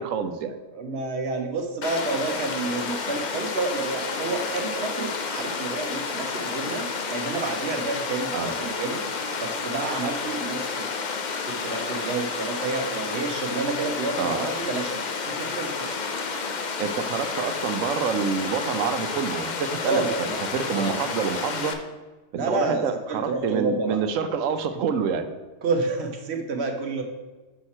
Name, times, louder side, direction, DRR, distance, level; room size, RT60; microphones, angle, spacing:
voice 1, 0.0-0.6 8.3-8.5 14.2-14.4 16.8-20.0 20.5-21.7 22.5-25.3, right 6 dB, 85° right, 9 dB, 1.0 m, -27 dB
voice 2, 0.7-9.0 9.4-10.9 11.5-16.0 19.9-20.4 20.7-21.0 22.3-22.8 23.1-24.0 25.6-27.0, right 3 dB, 55° right, 4 dB, 1.1 m, -29 dB
Water, 1.8-21.7, left 4 dB, 50° left, 0.6 m, -30 dB
6.2 x 5.7 x 4.2 m, 1.2 s
omnidirectional pair, 1.3 m